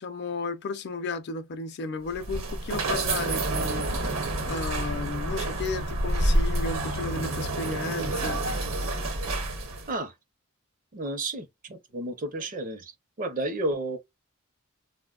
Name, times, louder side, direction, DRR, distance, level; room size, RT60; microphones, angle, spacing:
voice 1, 0.0-8.4, left 3 dB, 50° left, 0.4 m, -34 dB
sound 1, 2.1-9.9, right 1 dB, 65° right, 0.9 m, -28 dB
voice 2, 10.9-12.9 13.2-14.0, right 2 dB, 40° right, 0.6 m, -31 dB
4.0 x 2.1 x 2.3 m
head